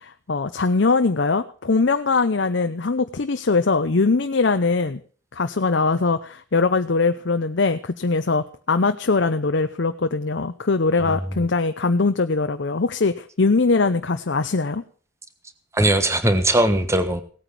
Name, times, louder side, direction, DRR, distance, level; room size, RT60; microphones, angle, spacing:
voice 1, 0.0-5.0 5.3-14.8, left 3 dB, 65° left, 8 dB, 0.7 m, -21 dB
voice 2, 11.1-11.4 15.7-17.2, right 1 dB, 15° right, 10 dB, 1.3 m, -20 dB
17.0 x 9.2 x 6.0 m, 0.43 s
head